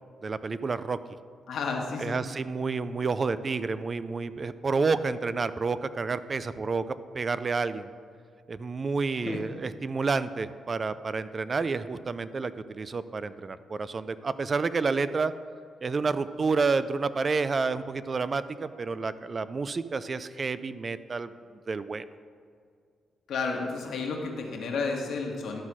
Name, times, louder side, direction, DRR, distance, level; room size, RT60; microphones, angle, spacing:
voice 1, 0.2-1.0 2.0-7.9 8.5-15.3 15.8-21.3 21.7-22.0, right 4 dB, 40° right, 14 dB, 0.3 m, -29 dB
voice 2, 1.5-2.2 9.2-9.4 23.3-25.6, left 4 dB, 75° left, 1 dB, 1.4 m, -31 dB
12.0 x 4.1 x 6.1 m, 2.2 s
cardioid pair, 90°, 0 cm